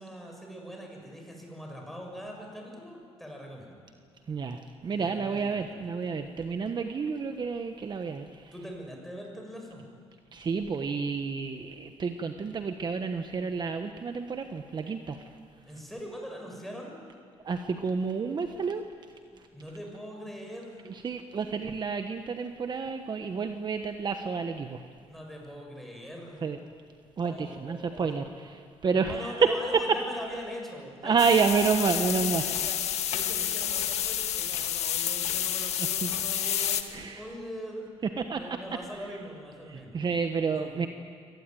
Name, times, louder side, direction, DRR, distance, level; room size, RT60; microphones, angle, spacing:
voice 1, 0.0-3.8 5.0-5.6 8.5-9.8 15.6-17.0 19.5-20.8 25.1-26.5 27.2-28.1 28.9-32.8 33.1-37.9 38.3-40.0 40.5-40.9, equal, ahead, 1 dB, 6.7 m, -42 dB
voice 2, 4.3-8.4 10.3-15.2 17.4-18.8 20.9-24.8 26.4-26.6 27.2-29.5 29.9-30.0 31.0-32.5 35.8-36.6 36.9-37.2 38.2-38.6 39.7-40.9, right 5 dB, 40° right, 6 dB, 1.2 m, -29 dB
sound 1, 31.2-36.8, left 10 dB, 75° left, 1.6 m, -29 dB
24.5 x 18.5 x 9.3 m, 2.2 s
cardioid pair, 105°, 11 cm